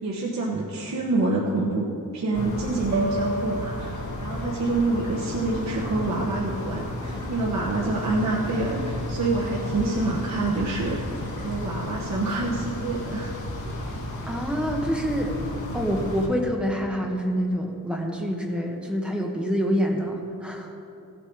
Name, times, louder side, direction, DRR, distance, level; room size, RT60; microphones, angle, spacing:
voice 1, 0.0-1.9 2.1-13.3 13.6-13.7, right 2 dB, 50° right, -4 dB, 1.3 m, -27 dB
sound 1, 2.3-16.3, left 1 dB, 60° left, 1.7 m, -33 dB
sound 2, 2.9-6.0, right 1 dB, 75° right, 0.8 m, -33 dB
sound 3, 5.4-11.6, equal, 30° right, 2.9 m, -41 dB
voice 2, 14.3-15.3 15.7-20.7, equal, 5° right, 0 dB, 1.3 m, -26 dB
16.0 x 8.3 x 4.7 m, 2.6 s
wide cardioid pair, 160°, 34 cm